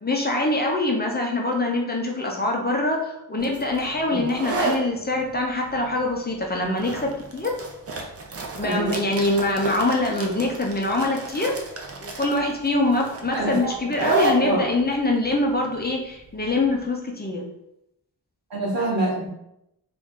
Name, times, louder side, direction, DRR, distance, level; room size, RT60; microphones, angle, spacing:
voice 1, 0.0-7.5 8.6-11.6 12.0-17.4, left 2 dB, 25° left, 0 dB, 0.6 m, -24 dB
sound 1, 3.4-16.8, right 2 dB, 35° right, 0.5 m, -32 dB
voice 2, 13.3-13.7 14.0-14.1 14.4-14.6 18.5-19.3, right 2 dB, 80° right, -9 dB, 1.0 m, -25 dB
3.1 x 2.6 x 3.6 m, 0.82 s
wide cardioid pair, 155°, 43 cm